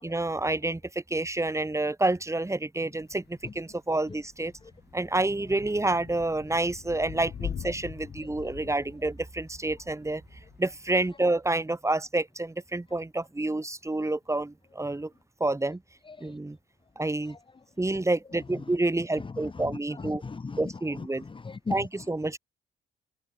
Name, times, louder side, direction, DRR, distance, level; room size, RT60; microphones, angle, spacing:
voice 1, 0.0-4.5 4.9-10.2 10.6-15.1 15.4-15.8 16.2-16.6 17.0-17.4 17.8-20.2 20.6-21.2 21.7-22.4, right 2 dB, 15° right, 6.6 m, -28 dB
Thunder / Rain, 3.0-11.3, left 8 dB, 55° left, 5.8 m, -43 dB
voice 2, 19.2-21.9, left 4 dB, 25° left, 1.4 m, -38 dB
cardioid pair, 90°, 20 cm